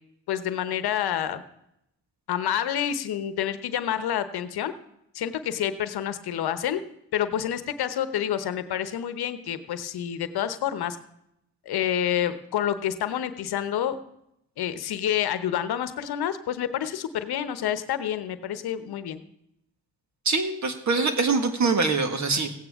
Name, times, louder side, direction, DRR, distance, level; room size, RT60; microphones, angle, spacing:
voice 1, 0.3-1.4 2.3-4.7 5.1-6.8 7.1-11.0 11.7-14.0 14.6-19.2, left 10 dB, 70° left, 11 dB, 1.0 m, -28 dB
voice 2, 20.2-22.6, right 4 dB, 45° right, 6 dB, 1.7 m, -24 dB
16.0 x 9.0 x 3.6 m, 0.79 s
supercardioid pair, 55°, 39 cm